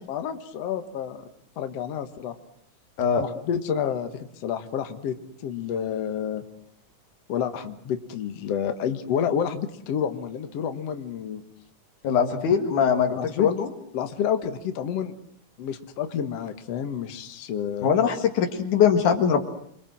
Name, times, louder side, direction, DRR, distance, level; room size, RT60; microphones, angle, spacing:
voice 1, 0.1-1.2 1.6-2.4 3.2-5.2 5.4-6.4 7.3-11.4 13.1-13.5 13.9-15.1 15.6-17.9, left 8 dB, 60° left, 7 dB, 2.4 m, -29 dB
voice 2, 12.0-13.7 17.8-19.4, left 7 dB, 85° left, 4 dB, 3.3 m, -22 dB
28.5 x 23.0 x 7.6 m, 0.69 s
omnidirectional pair, 3.4 m